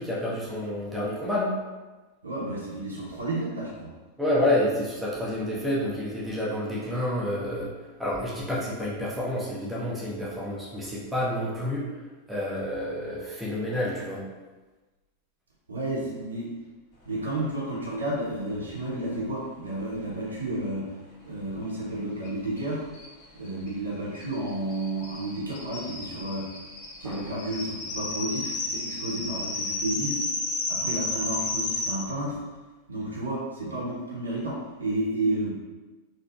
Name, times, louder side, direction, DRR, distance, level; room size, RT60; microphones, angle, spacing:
voice 1, 0.0-1.6 4.2-11.9 12.3-14.2 27.0-27.3, left 1 dB, 5° right, -7 dB, 0.8 m, -29 dB
voice 2, 2.2-3.9 15.7-16.5 17.1-20.9 21.2-22.8 23.3-26.5 27.0-30.2 30.7-32.4 32.9-35.5, right 1 dB, 75° right, -5 dB, 0.7 m, -31 dB
sound 1, 22.2-22.3 22.6-22.7 22.9-31.9, left 2 dB, 35° left, 0.7 m, -32 dB
3.5 x 2.0 x 2.3 m, 1.2 s
figure-of-eight pair, 90°, 0 cm